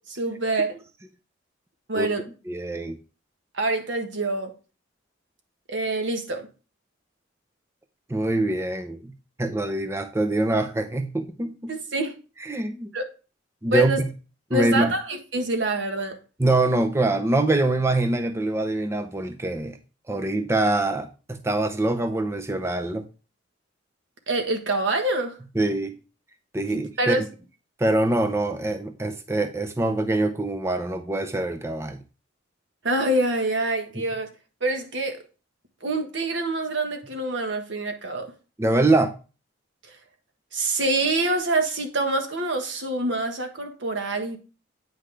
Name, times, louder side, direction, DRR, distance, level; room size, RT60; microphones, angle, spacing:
voice 1, 0.1-0.8 1.9-2.2 3.5-4.5 5.7-6.5 11.7-12.1 12.9-13.1 13.7-14.0 14.5-16.2 24.3-25.4 26.7-27.2 32.8-34.3 34.6-35.2 35.8-38.3 39.9-40.0 40.5-44.4, right 2 dB, 70° right, 1.5 m, -26 dB
voice 2, 2.5-3.0 8.1-9.1 9.4-11.7 12.4-12.9 13.6-14.1 14.5-14.9 16.4-19.8 20.1-23.1 25.6-25.9 26.5-27.3 27.8-32.0 38.6-39.2, right 2 dB, 15° right, 0.6 m, -24 dB
8.8 x 5.7 x 3.3 m
head